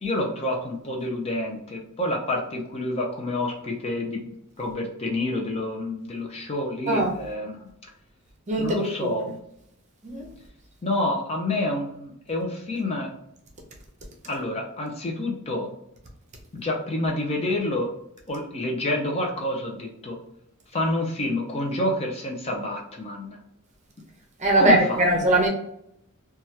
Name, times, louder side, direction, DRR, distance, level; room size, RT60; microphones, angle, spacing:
voice 1, 0.0-4.3 4.6-7.7 8.6-9.4 10.8-13.1 14.3-15.7 16.5-17.9 18.3-20.2 20.7-23.4 24.6-25.3, left 1 dB, 25° left, 0.5 m, -28 dB
voice 2, 8.5-9.1 10.0-10.3 24.4-25.5, right 1 dB, 30° right, 0.6 m, -21 dB
2.8 x 2.3 x 3.1 m
head